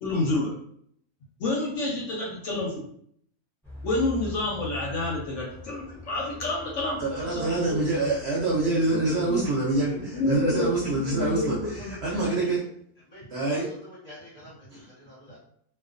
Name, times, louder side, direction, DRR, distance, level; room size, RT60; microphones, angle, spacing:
voice 1, 0.0-0.5 1.4-2.8 3.8-7.8 8.9-9.4 10.1-11.9, left 2 dB, 70° left, -2 dB, 0.8 m, -29 dB
sound 1, 3.6-12.3, left 1 dB, 5° left, 0.4 m, -43 dB
voice 2, 7.0-12.6 13.3-13.7 14.7-14.8, right 2 dB, 60° right, -4 dB, 0.7 m, -26 dB
voice 3, 12.1-12.5 13.1-13.2 13.5-15.4, equal, 35° left, -7 dB, 0.7 m, -47 dB
2.3 x 2.2 x 2.4 m, 0.66 s
omnidirectional pair, 1.5 m